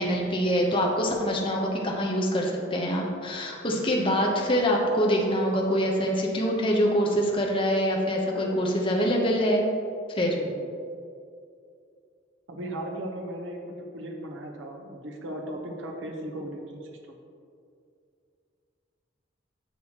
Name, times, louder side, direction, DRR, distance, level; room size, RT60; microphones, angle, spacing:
voice 1, 0.0-9.6 10.1-10.3, equal, 25° left, -1 dB, 0.9 m, -25 dB
voice 2, 10.4-10.7 12.5-17.0, right 1 dB, 85° right, 1 dB, 0.9 m, -37 dB
10.0 x 6.2 x 2.9 m, 2.4 s
head